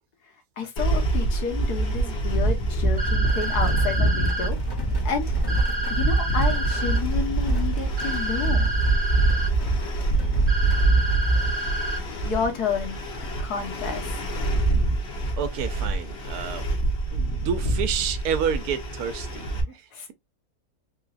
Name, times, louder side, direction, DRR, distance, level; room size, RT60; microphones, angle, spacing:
voice 1, 0.6-4.6 5.0-5.3 5.9-8.7 12.3-13.0 13.4-14.2 19.9-20.1, left 6 dB, 80° left, 1.6 m, -30 dB
sound 1, 0.8-19.6, right 2 dB, 50° left, 1.1 m, -25 dB
sound 2, 3.0-4.5 5.5-7.0 8.0-9.5 10.5-12.0, right 1 dB, 35° right, 0.7 m, -30 dB
sound 3, 3.2-11.6, left 2 dB, 25° left, 0.5 m, -43 dB
voice 2, 15.4-16.6 17.1-20.1, right 7 dB, 80° right, 1.2 m, -30 dB
3.7 x 3.0 x 2.4 m
omnidirectional pair, 1.6 m